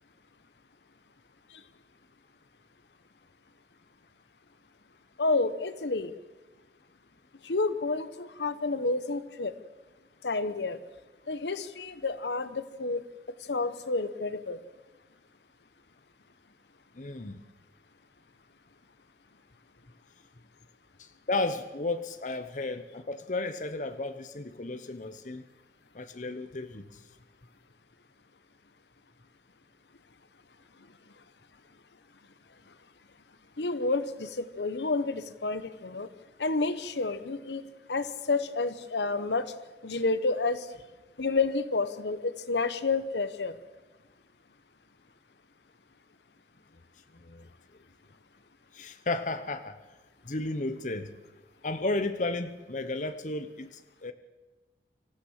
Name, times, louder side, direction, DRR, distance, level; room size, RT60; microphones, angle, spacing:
voice 1, 5.2-6.1 7.4-9.6 10.2-10.8 11.3-13.0 13.5-14.6 33.6-36.1 36.4-37.6 37.9-39.5 39.8-40.7 41.2-43.6, left 3 dB, 75° left, 13 dB, 1.0 m, -30 dB
voice 2, 16.9-17.4 21.0-25.4 25.9-27.0 47.2-47.5 48.7-49.8 50.2-51.1 51.6-54.1, left 2 dB, 45° left, 9 dB, 0.9 m, -33 dB
25.0 x 15.0 x 7.4 m, 1.2 s
head